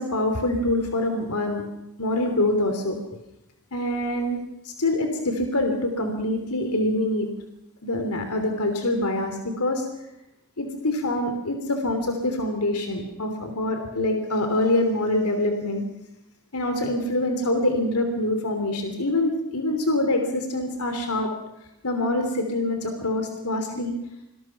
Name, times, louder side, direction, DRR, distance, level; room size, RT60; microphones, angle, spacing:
voice 1, 0.0-1.6 2.0-3.0 3.7-7.3 7.8-9.8 10.6-15.8 16.5-21.3 21.8-24.0, left 1 dB, 80° left, 5 dB, 3.2 m, -25 dB
26.5 x 21.0 x 6.0 m, 0.86 s
head